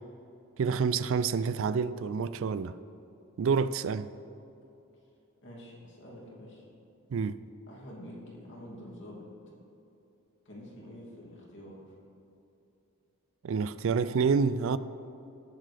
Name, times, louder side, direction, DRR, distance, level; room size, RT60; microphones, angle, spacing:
voice 1, 0.6-2.7 3.4-4.1 7.1-7.4 13.4-14.8, right 5 dB, 60° right, 15 dB, 0.3 m, -28 dB
voice 2, 5.4-6.7 7.7-9.3 10.4-12.0, equal, 55° left, -4 dB, 2.7 m, -47 dB
18.5 x 7.5 x 3.4 m, 2.8 s
head